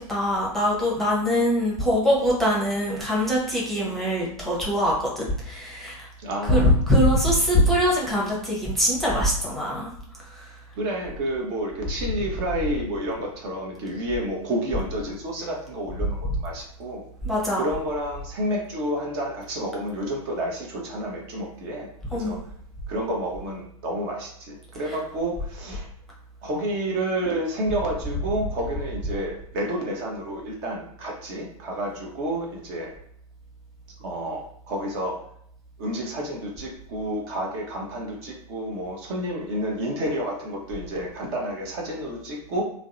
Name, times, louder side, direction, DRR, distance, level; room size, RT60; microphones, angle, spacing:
voice 1, 0.1-6.1 6.5-9.9 17.2-17.7 22.1-22.4, equal, ahead, -5 dB, 0.7 m, -22 dB
voice 2, 6.2-6.7 10.8-17.1 17.5-21.9 22.1-22.4 22.9-25.9 26.4-32.9 34.0-35.2 35.8-42.6, right 1 dB, 45° right, 0 dB, 0.7 m, -30 dB
2.5 x 2.0 x 2.5 m, 0.67 s
hypercardioid pair, 105°, 19 cm